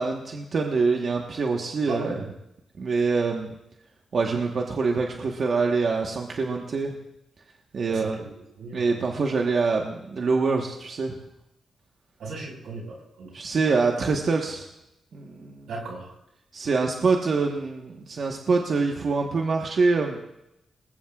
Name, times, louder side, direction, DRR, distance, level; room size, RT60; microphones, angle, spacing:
voice 1, 0.0-2.2 2.8-3.6 4.1-6.9 7.7-8.2 8.7-11.1 13.3-14.7 15.1-15.7 16.5-20.2, right 4 dB, 55° right, 1 dB, 1.3 m, -25 dB
voice 2, 1.9-2.3 7.9-8.3 8.6-9.0 12.2-13.3 15.7-16.1, right 2 dB, 90° right, -1 dB, 5.2 m, -36 dB
28.0 x 20.5 x 2.4 m, 0.87 s
cardioid pair, 105°, 0 cm